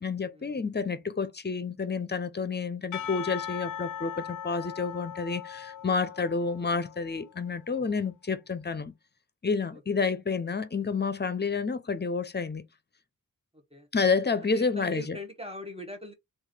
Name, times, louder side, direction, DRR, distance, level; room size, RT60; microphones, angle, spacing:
voice 1, 0.0-8.9 9.4-12.6 13.9-15.2, left 4 dB, 30° left, 0.8 m, -29 dB
Percussion / Church bell, 2.9-7.3, left 9 dB, 60° left, 0.5 m, -39 dB
voice 2, 14.4-16.1, left 1 dB, 15° right, 1.1 m, -42 dB
3.1 x 2.6 x 3.7 m
cardioid pair, 40°, 34 cm